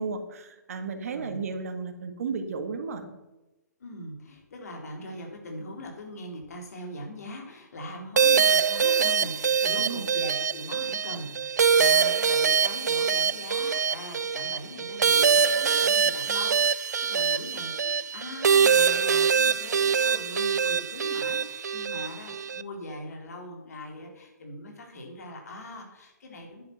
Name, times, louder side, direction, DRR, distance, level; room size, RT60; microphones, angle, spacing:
voice 1, 0.0-3.2 9.8-10.1, right 5 dB, 55° right, 7 dB, 1.7 m, -34 dB
voice 2, 0.9-1.4 3.8-26.6, left 1 dB, 60° left, 2 dB, 3.7 m, -41 dB
sound 1, 8.2-22.6, right 6 dB, 70° right, 0.4 m, -24 dB
10.5 x 8.9 x 5.8 m, 1.0 s
figure-of-eight pair, 130°, 10 cm